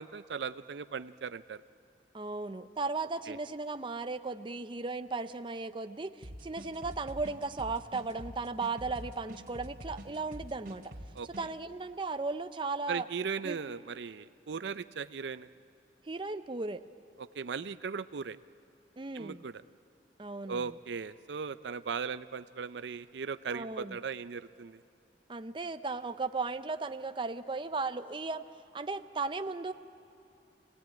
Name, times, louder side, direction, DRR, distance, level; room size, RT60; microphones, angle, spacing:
voice 1, 0.0-1.6 3.3-3.4 11.1-11.3 12.9-15.5 17.3-18.4 19.1-19.5 20.5-24.8, right 6 dB, 75° right, 14 dB, 0.5 m, -38 dB
voice 2, 2.1-10.8 11.3-13.0 13.4-13.6 16.0-16.8 19.0-19.4 20.2-20.7 23.5-24.0 25.3-28.4 28.7-29.7, right 3 dB, 30° right, 9 dB, 0.6 m, -36 dB
sound 1, 6.2-11.5, equal, 55° right, 2.6 m, -45 dB
25.5 x 18.0 x 8.9 m, 3.0 s
head